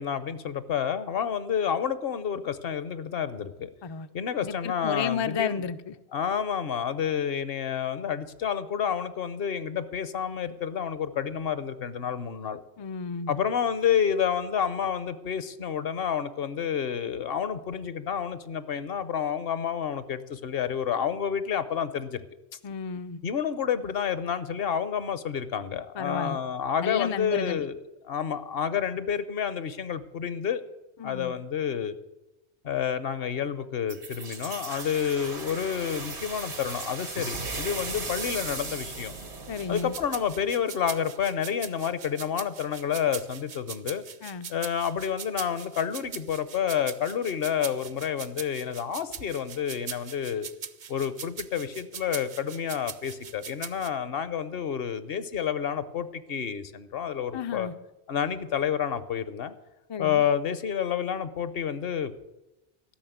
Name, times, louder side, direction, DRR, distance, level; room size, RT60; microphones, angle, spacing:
voice 1, 0.0-3.7 4.1-5.6 6.1-12.6 13.3-22.2 23.2-30.6 31.0-31.9 32.6-39.1 39.7-44.0 44.5-50.5 50.9-57.7 58.1-59.5 60.0-62.1, left 8 dB, 65° left, 13 dB, 0.9 m, -29 dB
voice 2, 4.4-5.9 12.8-13.4 22.6-23.2 26.0-26.4 26.8-27.6 31.0-31.3 39.5-40.0 44.2-44.5 57.3-57.7 59.9-60.2, left 6 dB, 45° left, 10 dB, 0.3 m, -32 dB
sound 1, 33.9-40.5, right 3 dB, 90° right, 1.9 m, -37 dB
sound 2, 39.4-53.9, right 7 dB, 50° right, 0.7 m, -41 dB
13.0 x 6.3 x 9.2 m, 0.96 s
omnidirectional pair, 1.1 m